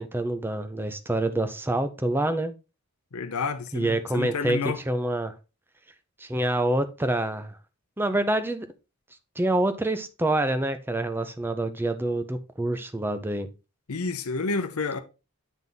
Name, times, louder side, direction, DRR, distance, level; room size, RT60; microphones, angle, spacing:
voice 1, 0.0-2.5 3.7-5.3 6.2-7.6 8.0-8.7 9.4-13.5, right 1 dB, 10° right, 0.5 m, -26 dB
voice 2, 3.1-4.8 13.9-15.0, left 4 dB, 75° left, 0.7 m, -29 dB
9.2 x 3.5 x 3.9 m
head